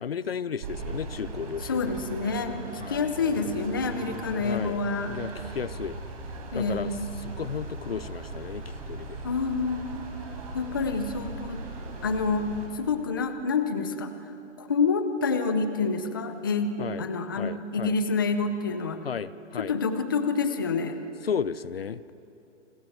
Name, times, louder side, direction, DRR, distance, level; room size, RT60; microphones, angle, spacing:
voice 1, 0.0-2.0 2.8-3.0 4.4-4.8 5.1-6.0 6.5-6.9 7.2-9.2 16.8-17.1 17.4-17.9 19.0-19.7 21.2-22.0, left 7 dB, 50° left, 17 dB, 0.7 m, -34 dB
sound 1, 0.6-12.7, right 3 dB, 30° right, 4.3 m, -38 dB
voice 2, 1.6-5.1 6.5-7.1 9.2-10.0 10.5-11.6 12.0-12.5 12.7-14.1 14.6-19.0 19.6-21.0, left 4 dB, 20° left, 9 dB, 0.7 m, -28 dB
28.5 x 24.0 x 7.9 m, 2.8 s
hypercardioid pair, 175°, 37 cm